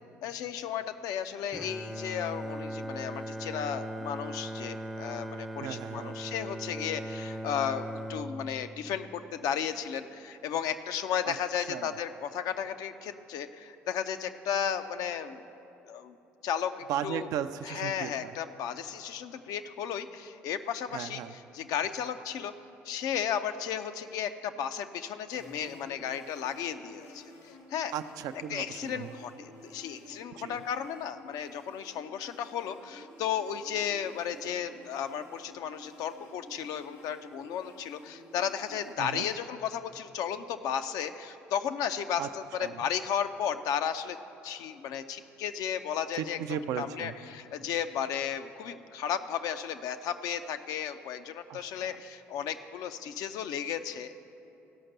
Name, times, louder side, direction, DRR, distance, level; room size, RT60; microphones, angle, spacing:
voice 1, 0.2-15.4 15.8-16.2 16.4-17.3 17.6-22.5 22.8-27.9 28.5-44.2 44.4-46.4 46.8-54.1, left 8 dB, 60° left, 9 dB, 0.5 m, -34 dB
Bowed string instrument, 1.5-9.7, equal, ahead, 0.5 m, -39 dB
voice 2, 5.6-6.2 11.2-11.4 11.7-12.0 16.9-18.3 20.9-21.3 27.9-29.1 30.4-30.6 39.0-39.3 42.2-42.3 42.6-42.8 46.1-47.1 51.5-51.9, right 9 dB, 60° right, 10 dB, 0.4 m, -36 dB
sound 1, 25.3-38.9, left 1 dB, 75° left, 1.5 m, -52 dB
15.5 x 5.8 x 6.6 m, 2.9 s
hypercardioid pair, 55°, 7 cm